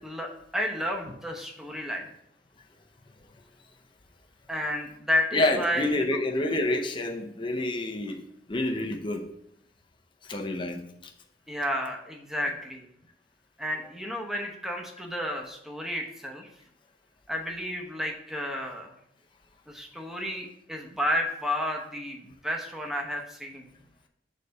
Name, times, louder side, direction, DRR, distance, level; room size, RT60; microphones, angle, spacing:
voice 1, 0.0-2.1 4.5-6.0 11.5-12.8 13.6-16.5 17.3-18.9 19.7-23.7, equal, ahead, 1 dB, 0.9 m, -31 dB
voice 2, 5.3-8.2 8.5-9.2 10.3-10.8, left 2 dB, 25° left, 2 dB, 0.6 m, -28 dB
6.6 x 4.0 x 5.3 m, 0.76 s
head